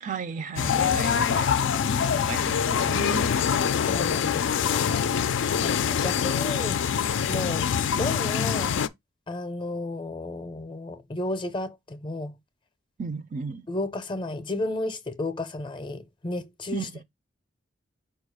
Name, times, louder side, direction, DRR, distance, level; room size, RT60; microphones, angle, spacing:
voice 1, 0.0-1.7 2.0-3.4 13.0-13.7 16.7-17.0, right 5 dB, 40° right, 0.4 m, -35 dB
sound 1, 0.6-8.9, left 7 dB, 75° left, 0.4 m, -24 dB
voice 2, 3.8-4.9 5.6-6.8 7.3-7.6 8.0-8.8 9.3-12.3 13.7-17.0, left 2 dB, 25° left, 0.5 m, -33 dB
4.8 x 2.3 x 4.7 m
head